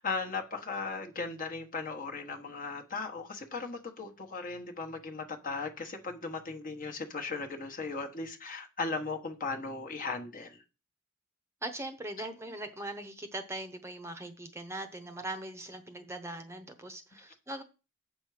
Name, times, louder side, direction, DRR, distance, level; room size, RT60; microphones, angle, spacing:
voice 1, 0.0-10.6, left 4 dB, 40° left, 4 dB, 1.2 m, -37 dB
voice 2, 11.6-17.6, right 1 dB, 15° right, 8 dB, 0.8 m, -40 dB
7.9 x 6.1 x 4.9 m, 0.31 s
head